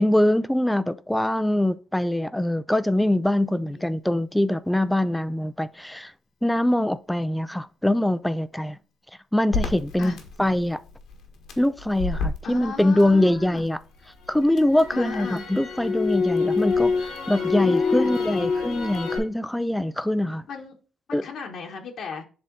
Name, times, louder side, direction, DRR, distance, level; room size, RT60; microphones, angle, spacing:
voice 1, 0.0-6.1 6.4-8.8 9.3-10.1 10.4-10.8 11.6-13.8 14.3-20.4 21.1-21.2, left 1 dB, 5° left, 0.4 m, -23 dB
voice 2, 3.6-3.9 10.0-10.2 12.4-13.6 14.9-15.4 17.5-18.2 20.5-20.8 21.1-22.2, left 5 dB, 65° left, 1.2 m, -36 dB
Crackle, 9.5-13.6 14.0-19.2, left 4 dB, 85° left, 1.5 m, -27 dB
7.5 x 3.5 x 3.8 m
cardioid pair, 90°, 0 cm